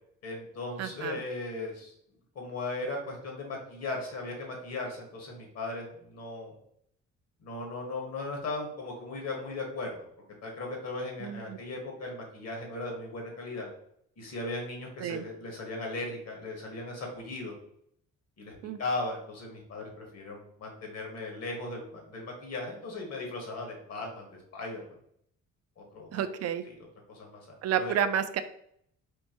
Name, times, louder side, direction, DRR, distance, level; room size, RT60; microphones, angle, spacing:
voice 1, 0.2-1.9 2.3-6.6 7.4-10.0 10.4-13.7 14.2-17.5 18.4-24.9 25.8-26.2 26.6-26.8 27.1-27.9, left 2 dB, 55° left, 0 dB, 1.4 m, -37 dB
voice 2, 0.8-1.2 11.2-11.6 15.0-15.2 18.6-18.8 26.1-26.6 27.6-28.4, right 9 dB, 55° right, 11 dB, 0.4 m, -30 dB
4.4 x 2.6 x 2.9 m, 0.70 s
cardioid pair, 90°, 30 cm